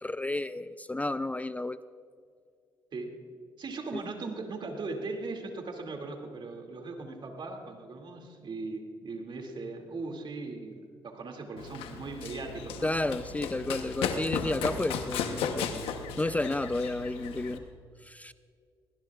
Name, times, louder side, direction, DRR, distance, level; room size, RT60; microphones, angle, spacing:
voice 1, 0.0-1.8 3.9-4.0 12.8-15.7 16.2-17.6 18.0-18.3, left 2 dB, 15° left, 14 dB, 0.4 m, -31 dB
voice 2, 3.6-12.9, right 3 dB, 55° right, 3 dB, 2.5 m, -39 dB
Run, 11.6-17.6, left 6 dB, 80° left, 1.0 m, -35 dB
20.5 x 19.0 x 2.4 m, 2.2 s
supercardioid pair, 50°, 10 cm